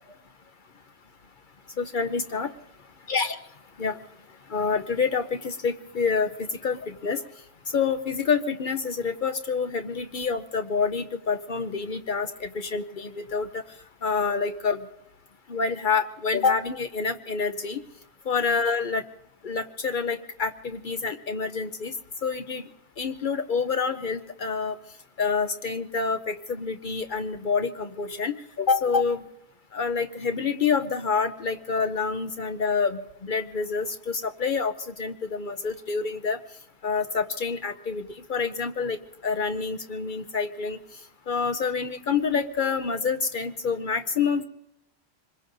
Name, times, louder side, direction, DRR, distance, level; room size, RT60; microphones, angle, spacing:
voice 1, 1.8-2.5 3.1-3.4 3.8-4.0 4.5-6.3 6.6-7.2 7.7-13.6 14.0-14.8 15.5-17.8 18.3-19.0 19.4-21.9 22.2-22.6 23.0-24.8 25.2-29.3 29.7-36.4 36.8-40.8 41.3-44.4, left 5 dB, 55° left, 8 dB, 0.8 m, -27 dB
25.5 x 21.5 x 2.6 m, 0.81 s
omnidirectional pair, 1.1 m